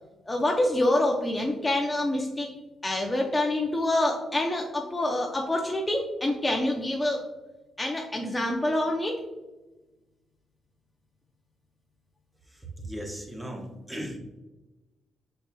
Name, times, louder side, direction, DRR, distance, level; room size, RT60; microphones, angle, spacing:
voice 1, 0.3-2.5 2.8-7.2 7.8-9.2, left 1 dB, 15° left, 0 dB, 0.6 m, -26 dB
voice 2, 12.8-14.2, equal, 10° right, 1 dB, 1.0 m, -36 dB
5.5 x 4.3 x 2.3 m, 1.1 s
cardioid pair, 95°, 0 cm